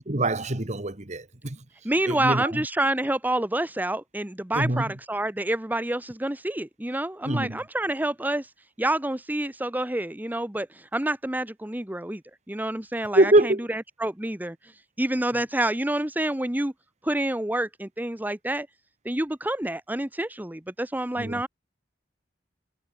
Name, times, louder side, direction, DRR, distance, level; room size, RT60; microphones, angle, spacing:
voice 1, 0.0-1.6 2.1-2.6 4.6-4.8 7.2-7.6 13.1-13.6 21.2-21.4, right 1 dB, 40° right, 1.8 m, -24 dB
voice 2, 1.8-8.5 8.8-12.2 12.5-14.6 15.0-16.7 17.0-18.7 19.0-21.5, right 1 dB, 10° right, 1.0 m, -28 dB
head